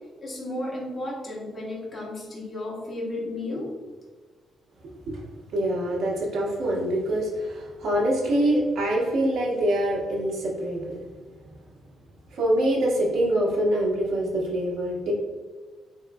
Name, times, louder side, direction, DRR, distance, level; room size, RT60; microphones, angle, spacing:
voice 1, 0.2-3.7, left 1 dB, 20° left, -4 dB, 1.0 m, -33 dB
voice 2, 5.5-11.0 12.3-15.1, right 1 dB, 75° right, -4 dB, 0.9 m, -25 dB
3.7 x 3.0 x 2.2 m, 1.4 s
cardioid pair, 140°, 0 cm